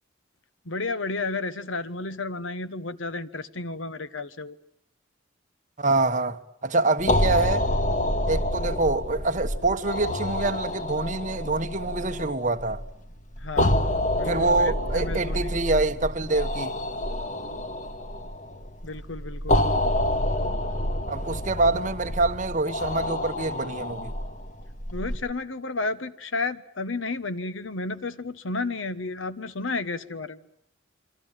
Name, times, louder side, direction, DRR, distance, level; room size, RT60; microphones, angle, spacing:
voice 1, 0.6-4.6 13.4-13.7 14.1-15.5 18.8-19.6 24.9-30.4, left 3 dB, 85° left, 1.4 m, -32 dB
voice 2, 5.8-7.7 8.3-12.8 14.2-16.7 21.1-24.1, right 2 dB, 40° right, 1.4 m, -25 dB
sound 1, 7.0-25.2, left 1 dB, 40° left, 1.9 m, -28 dB
27.5 x 24.5 x 7.6 m
head